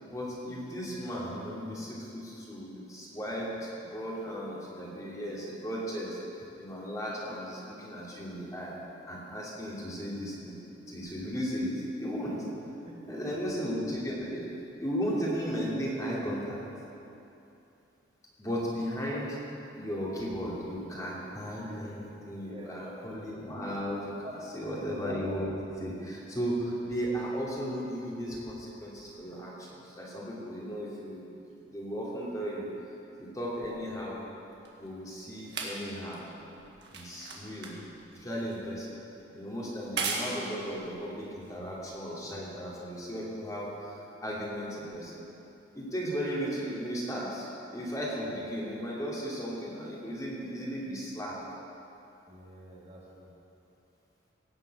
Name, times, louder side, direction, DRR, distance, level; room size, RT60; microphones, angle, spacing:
voice 1, 0.0-8.7 9.1-10.6 10.9-12.4 13.1-14.5 14.8-16.6 18.4-19.4 19.7-31.2 31.7-32.6 33.2-34.2 34.8-36.2 36.9-37.8 38.1-38.9 39.3-45.2 45.7-51.4, equal, 20° left, -6 dB, 2.8 m, -35 dB
voice 2, 12.8-13.6 19.7-19.8 21.6-21.9 22.2-23.1 24.2-24.9 52.3-53.3, equal, 35° right, -5 dB, 2.2 m, -47 dB
sound 1, 33.6-42.2 43.1-43.2, right 4 dB, 60° right, 1.9 m, -40 dB
17.5 x 7.6 x 8.0 m, 2.8 s
head